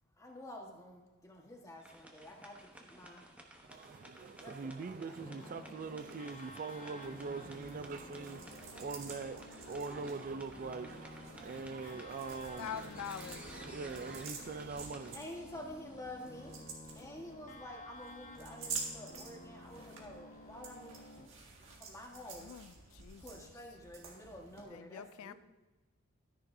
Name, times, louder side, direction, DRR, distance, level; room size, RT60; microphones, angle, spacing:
voice 1, 0.2-3.3 4.4-5.7 15.1-16.6 17.0-21.0 21.6-22.5 23.2-25.3, left 1 dB, 15° left, 1.4 m, -49 dB
sound 1, 1.8-16.6, right 1 dB, 5° right, 0.9 m, -56 dB
voice 2, 3.7-12.9 13.2-15.2, right 4 dB, 40° right, 0.4 m, -43 dB
sound 2, 5.2-21.3, left 1 dB, 40° left, 0.9 m, -53 dB
sound 3, 7.0-24.6, right 4 dB, 65° right, 1.8 m, -50 dB
voice 3, 12.6-13.6 22.4-23.4 24.7-25.3, left 8 dB, 75° left, 0.3 m, -45 dB
13.0 x 10.0 x 2.7 m
head